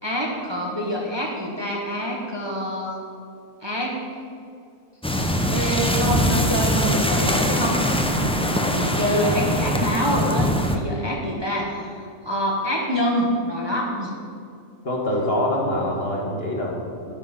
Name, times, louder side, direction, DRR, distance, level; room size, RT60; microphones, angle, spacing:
voice 1, 0.0-3.0 3.6-4.0 5.5-11.9 12.2-14.2, equal, 20° right, -2 dB, 1.4 m, -26 dB
sound 1, 5.0-10.8, equal, 10° left, 0.4 m, -22 dB
voice 2, 14.8-17.1, left 1 dB, 45° left, -1 dB, 1.8 m, -25 dB
10.5 x 9.7 x 5.4 m, 2.4 s
omnidirectional pair, 1.4 m